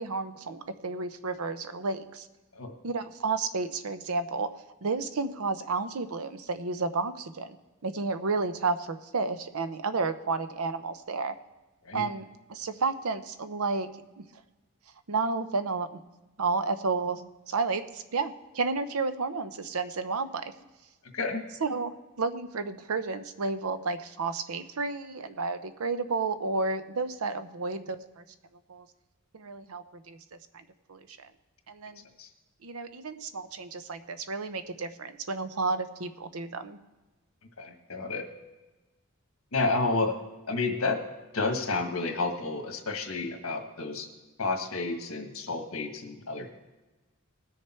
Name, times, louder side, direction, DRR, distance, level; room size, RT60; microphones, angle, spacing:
voice 1, 0.0-2.2 2.8-4.5 4.8-7.6 7.8-11.4 11.9-12.2 12.5-13.9 14.2-14.3 15.1-16.0 16.4-20.5 21.6-28.2 28.7-28.8 29.3-30.2 30.5-30.6 30.9-31.0 31.7-32.0 32.6-36.8, right 4 dB, 85° right, 11 dB, 0.8 m, -31 dB
voice 2, 21.1-21.4 32.2-32.3 37.6-38.2 39.5-40.2 40.5-41.0 41.3-44.1 44.4-46.5, left 3 dB, 70° left, 5 dB, 1.6 m, -30 dB
19.5 x 6.6 x 4.4 m, 1.1 s
head